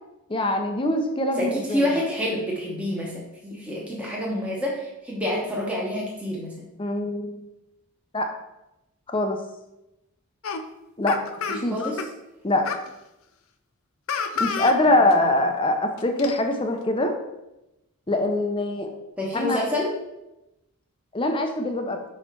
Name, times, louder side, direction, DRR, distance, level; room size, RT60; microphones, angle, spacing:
voice 1, 0.3-2.0 6.8-7.5 8.1-8.3 9.1-9.4 11.0-11.2 11.6-11.8 12.4-12.7 14.4-17.1 18.1-18.9 19.3-19.6 21.1-22.0, left 1 dB, 25° left, 4 dB, 0.6 m, -23 dB
voice 2, 1.4-6.5 11.5-12.0 15.2-15.3 19.2-19.9, left 1 dB, 5° right, -4 dB, 1.1 m, -28 dB
sound 1, 10.4-10.6 11.1-12.1 12.6-12.9 14.1-14.8 15.1-15.2 16.0-16.4, left 5 dB, 75° left, 0.5 m, -29 dB
5.6 x 4.3 x 4.6 m, 0.93 s
head